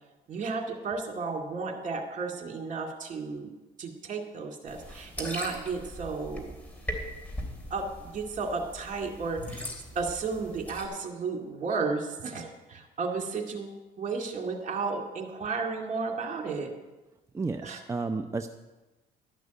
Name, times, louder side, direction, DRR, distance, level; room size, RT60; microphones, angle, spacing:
voice 1, 0.3-3.5 3.8-6.5 7.7-9.7 9.9-16.7 17.6-17.8, right 4 dB, 45° right, 2 dB, 2.3 m, -33 dB
sound 1, 4.7-10.9, equal, 10° left, 3.1 m, -40 dB
voice 2, 17.3-18.5, right 3 dB, 15° right, 6 dB, 0.6 m, -32 dB
12.5 x 6.2 x 9.2 m, 1.1 s
cardioid pair, 110°, 17 cm